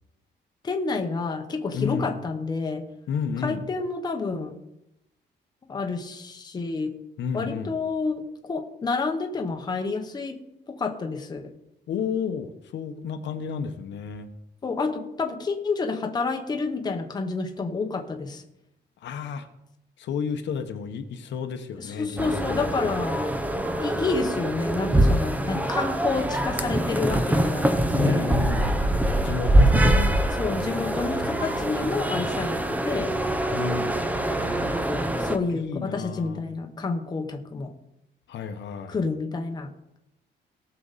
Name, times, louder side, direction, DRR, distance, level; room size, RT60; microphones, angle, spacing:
voice 1, 0.6-2.9 3.4-4.6 5.7-6.9 7.3-10.4 10.7-11.5 14.6-18.4 21.8-23.2 23.8-28.3 29.7-30.0 30.4-33.1 35.2-37.7 38.9-40.0, left 4 dB, 20° left, 4 dB, 0.9 m, -29 dB
voice 2, 1.7-2.1 3.1-3.6 7.2-7.8 11.9-14.3 19.0-19.5 20.0-22.9 27.9-28.9 29.2-30.1 33.5-34.0 35.4-36.4 38.3-39.0, left 6 dB, 70° left, 7 dB, 1.1 m, -31 dB
sound 1, 22.2-35.4, right 1 dB, 10° right, 0.6 m, -24 dB
18.5 x 6.9 x 4.1 m, 0.85 s
cardioid pair, 180°, 19 cm